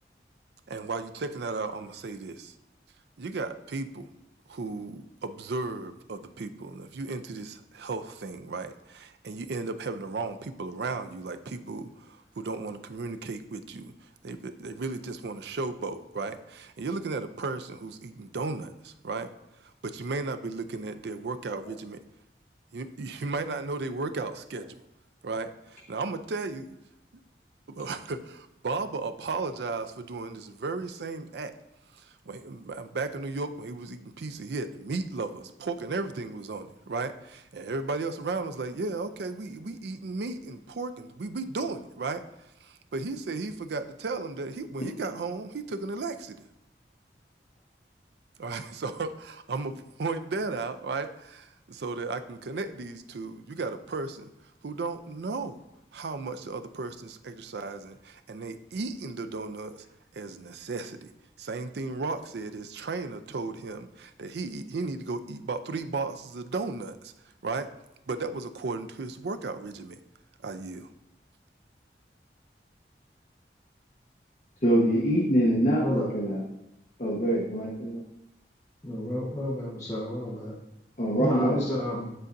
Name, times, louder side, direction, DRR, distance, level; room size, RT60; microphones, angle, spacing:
voice 1, 0.7-2.5 3.2-4.1 4.5-19.3 19.6-22.0 22.7-24.8 25.2-26.8 27.7-31.6 31.9-42.2 42.6-46.4 48.4-54.3 54.6-55.6 55.9-59.8 60.1-61.1 61.4-67.1 67.4-67.7 68.1-70.0 70.4-70.9, right 3 dB, 75° right, 9 dB, 0.5 m, -35 dB
voice 2, 74.6-76.4 77.0-78.0 81.0-81.6, equal, 40° left, -5 dB, 1.0 m, -24 dB
voice 3, 78.8-80.5 81.2-82.1, left 1 dB, 15° left, -6 dB, 1.1 m, -31 dB
9.8 x 4.0 x 2.6 m, 0.89 s
head